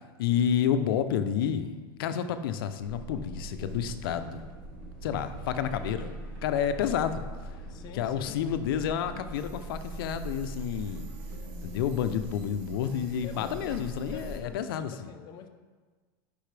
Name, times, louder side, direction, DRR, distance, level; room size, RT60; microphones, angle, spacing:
voice 1, 0.2-4.5 5.0-7.2 7.9-11.1 11.6-15.1, left 8 dB, 75° left, 10 dB, 0.6 m, -30 dB
sound 1, 2.8-14.4, right 2 dB, 60° right, 1.2 m, -41 dB
sound 2, 3.7-13.6, equal, 35° right, 1.6 m, -52 dB
voice 2, 7.7-8.5 13.2-13.8 14.1-14.6 14.9-15.5, left 8 dB, 35° left, 5 dB, 0.7 m, -45 dB
10.0 x 5.4 x 3.3 m, 1.4 s
supercardioid pair, 150°, 12 cm